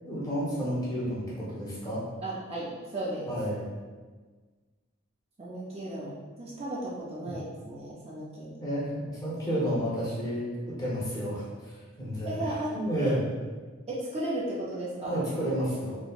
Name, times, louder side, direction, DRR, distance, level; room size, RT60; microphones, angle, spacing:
voice 1, 0.0-2.0 3.3-3.6 7.2-7.3 8.6-13.2 15.0-16.0, equal, 20° left, -8 dB, 0.8 m, -31 dB
voice 2, 2.2-3.3 5.4-8.5 12.2-13.1 13.9-15.2, right 1 dB, 30° right, -5 dB, 0.4 m, -35 dB
3.1 x 2.0 x 2.3 m, 1.4 s
head